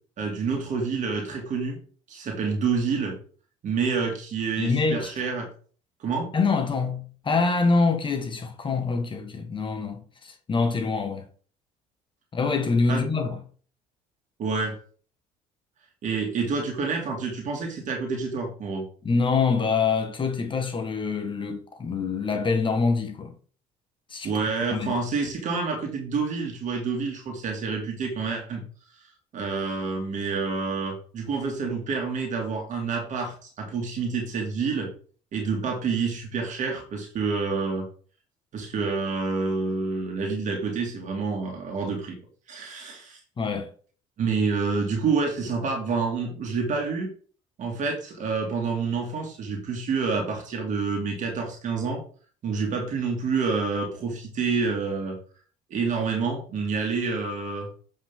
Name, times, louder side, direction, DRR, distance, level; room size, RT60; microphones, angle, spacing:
voice 1, 0.2-1.8 2.1-3.2 3.6-5.5 6.0-6.3 12.9-13.0 14.4-14.8 16.0-18.9 24.2-28.6 29.0-34.9 35.3-37.9 38.5-42.2 42.5-43.2 44.2-47.1 47.6-52.0 52.4-55.2 55.7-57.7, right 4 dB, 55° right, 2.3 m, -28 dB
voice 2, 4.6-5.1 6.3-11.3 12.3-13.4 19.0-23.3 24.1-24.3 24.7-24.9 43.4-43.7, left 4 dB, 35° left, 1.4 m, -25 dB
7.8 x 5.4 x 3.7 m
supercardioid pair, 80°, 15 cm